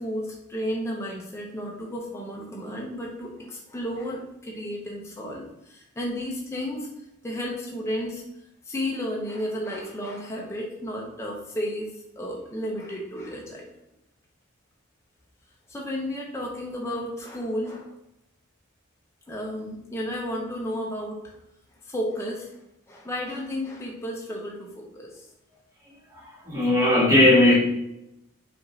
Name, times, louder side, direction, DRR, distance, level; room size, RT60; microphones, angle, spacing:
voice 1, 0.0-6.9 7.2-8.2 8.7-13.7 15.7-17.9 19.3-21.4 21.9-22.6 22.9-25.3, equal, 10° left, -2 dB, 0.5 m, -33 dB
voice 2, 26.1-27.5, left 1 dB, 15° right, -6 dB, 1.3 m, -18 dB
5.0 x 2.5 x 3.1 m, 0.84 s
head